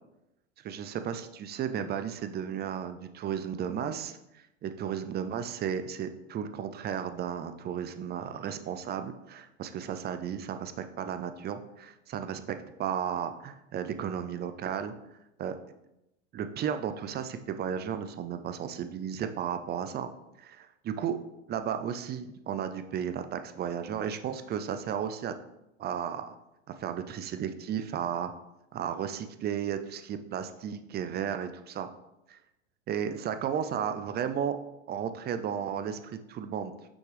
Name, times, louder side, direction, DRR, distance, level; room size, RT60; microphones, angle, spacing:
voice 1, 0.6-14.9 15.4-15.6 16.3-20.1 20.4-21.2 21.5-25.3 25.8-26.4 26.8-28.3 28.7-31.9 32.3-32.4 32.9-34.6 34.9-36.7, right 8 dB, 30° right, 9 dB, 0.5 m, -34 dB
6.0 x 5.9 x 3.4 m, 0.89 s
hypercardioid pair, 90°, 35 cm